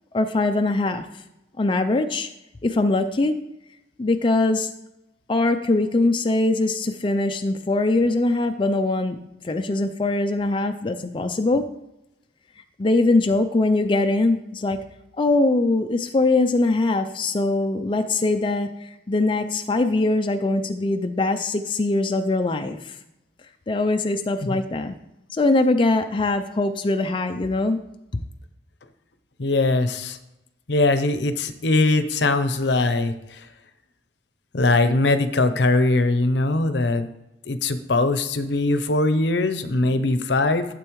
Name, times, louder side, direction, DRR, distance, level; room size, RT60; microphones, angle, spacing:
voice 1, 0.1-1.1 1.6-2.3 2.6-3.3 4.0-4.7 5.3-9.2 9.4-11.6 12.8-14.8 15.2-23.0 23.7-24.9 25.3-27.8 28.1-28.2, left 2 dB, 30° left, 7 dB, 0.4 m, -22 dB
voice 2, 29.4-30.2 30.7-33.4 34.5-37.1 37.5-40.7, left 2 dB, 70° left, 10 dB, 0.7 m, -21 dB
12.0 x 7.6 x 3.1 m, 0.92 s
head